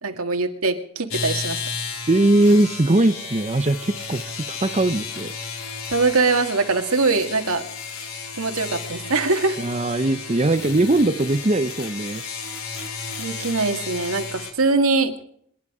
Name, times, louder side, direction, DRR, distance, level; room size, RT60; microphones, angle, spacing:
voice 1, 0.0-1.6 5.9-7.6 8.3-9.6 13.2-15.1, right 3 dB, 85° right, 6 dB, 2.1 m, -22 dB
sound 1, 1.1-14.5, left 5 dB, 90° left, 3.4 m, -33 dB
voice 2, 2.1-5.3 9.6-12.2, right 2 dB, 30° right, 9 dB, 0.7 m, -20 dB
26.5 x 11.0 x 4.9 m, 0.65 s
head